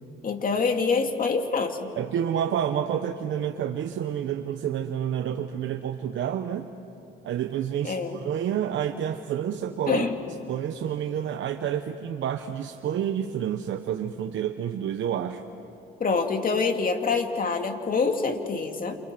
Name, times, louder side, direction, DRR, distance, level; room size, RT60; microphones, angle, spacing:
voice 1, 0.2-1.9 7.8-8.2 9.9-10.1 16.0-19.0, left 4 dB, 45° left, 5 dB, 2.5 m, -25 dB
voice 2, 2.0-6.7 7.2-10.0 10.5-15.4, right 9 dB, 75° right, 6 dB, 1.1 m, -29 dB
29.0 x 28.5 x 6.1 m, 2.7 s
cardioid pair, 90°, 20 cm